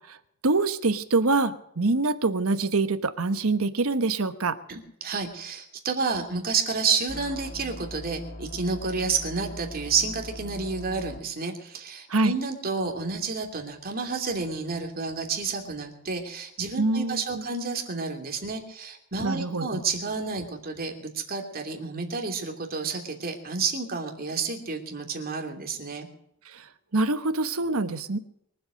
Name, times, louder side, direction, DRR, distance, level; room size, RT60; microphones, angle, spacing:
voice 1, 0.4-4.6 12.1-12.3 16.8-17.4 19.2-19.8 26.5-26.6 26.9-28.2, right 3 dB, 75° right, 11 dB, 1.1 m, -25 dB
voice 2, 4.7-26.1, right 4 dB, 45° right, 3 dB, 2.9 m, -30 dB
sound 1, 7.1-11.2, left 1 dB, 50° left, 1.7 m, -40 dB
23.5 x 8.0 x 6.5 m, 0.74 s
head